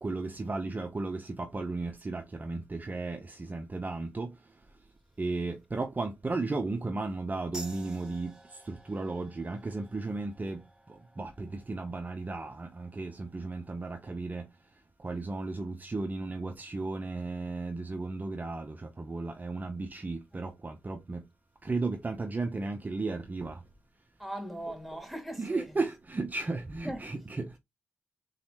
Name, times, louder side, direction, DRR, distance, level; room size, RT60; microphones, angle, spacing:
voice 1, 0.0-4.3 5.2-8.3 8.7-10.6 11.2-14.4 15.0-21.2 21.6-23.6 25.4-27.5, right 3 dB, 35° right, 0.7 m, -34 dB
sound 1, 7.5-14.6, right 1 dB, 15° right, 1.4 m, -52 dB
voice 2, 24.2-25.7 26.8-27.1, right 1 dB, ahead, 2.9 m, -39 dB
4.1 x 3.9 x 2.9 m
supercardioid pair, 45°, 5 cm